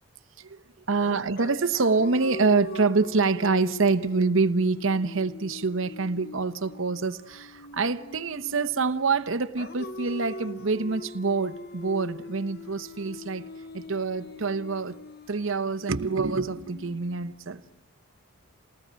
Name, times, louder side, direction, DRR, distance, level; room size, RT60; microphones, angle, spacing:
voice 1, 0.9-13.5 13.7-15.0 15.3-17.6, right 4 dB, 65° right, 0.9 m, -26 dB
sound 1, 1.0-9.0 9.6-17.6, left 2 dB, 45° left, 0.7 m, -42 dB
28.0 x 19.5 x 7.5 m
head